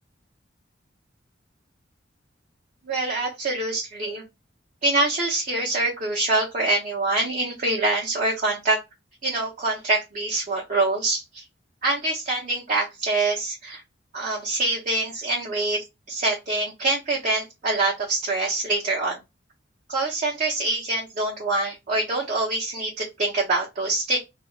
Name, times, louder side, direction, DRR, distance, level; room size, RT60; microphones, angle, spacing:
voice 1, 2.8-4.2 4.8-8.8 9.2-11.4 11.8-13.8 14.1-19.2 19.9-24.2, right 2 dB, 40° right, -3 dB, 0.7 m, -25 dB
2.4 x 2.3 x 3.0 m, 0.22 s
head